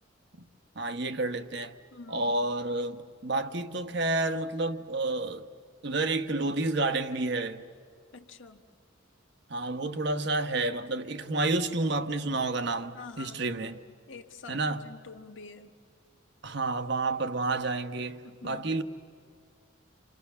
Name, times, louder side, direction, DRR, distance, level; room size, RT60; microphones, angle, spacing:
voice 1, 0.7-1.8 2.1-5.5 5.8-7.6 9.5-13.8 14.5-14.8 16.4-18.8, right 2 dB, 60° right, 1.2 m, -30 dB
voice 2, 1.9-2.4 8.1-8.6 12.9-15.7 18.2-18.8, left 4 dB, 75° left, 1.7 m, -47 dB
29.0 x 27.0 x 7.0 m
head